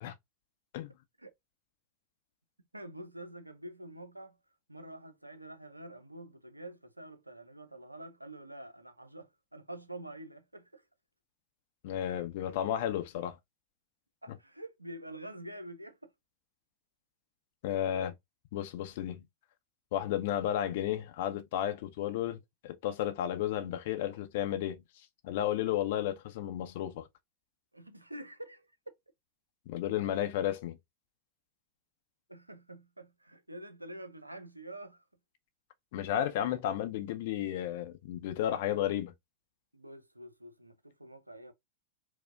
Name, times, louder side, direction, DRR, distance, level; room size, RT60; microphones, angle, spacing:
voice 1, 2.7-4.4 4.7-10.8 14.2-16.1 17.8-18.1 27.7-28.7 32.3-35.0 39.7-41.5, right 1 dB, 85° right, 0.5 m, -47 dB
voice 2, 11.8-13.4 17.6-18.1 18.5-19.3 19.9-22.4 22.6-24.8 25.2-27.1 29.7-30.8 35.9-39.1, left 11 dB, 50° left, 0.6 m, -33 dB
4.5 x 2.1 x 2.3 m
figure-of-eight pair, 90°, 0 cm